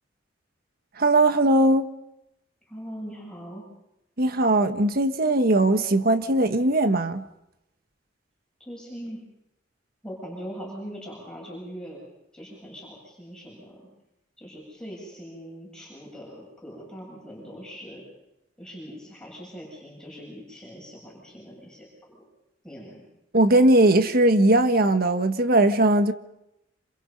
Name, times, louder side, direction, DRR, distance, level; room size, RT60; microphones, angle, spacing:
voice 1, 1.0-1.9 4.2-7.2 23.3-26.1, right 1 dB, 55° right, 1.4 m, -19 dB
voice 2, 2.7-3.7 8.6-9.2 10.0-12.0 12.3-13.9 14.4-18.0 18.6-21.9 22.1-22.3 22.6-23.0, equal, 5° left, 7.8 m, -41 dB
28.5 x 27.5 x 5.5 m
head